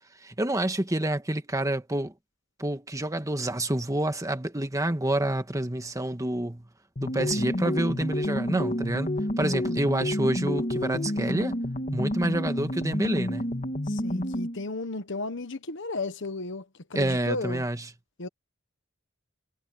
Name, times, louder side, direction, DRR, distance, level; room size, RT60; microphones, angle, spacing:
voice 1, 0.2-2.1 2.6-6.6 7.0-11.6 11.9-13.5 16.9-17.8, right 1 dB, 15° right, 1.6 m, -28 dB
sound 1, 7.0-14.6, left 1 dB, 40° left, 2.0 m, -29 dB
voice 2, 13.9-17.6 18.2-18.3, left 2 dB, 65° left, 1.3 m, -34 dB
head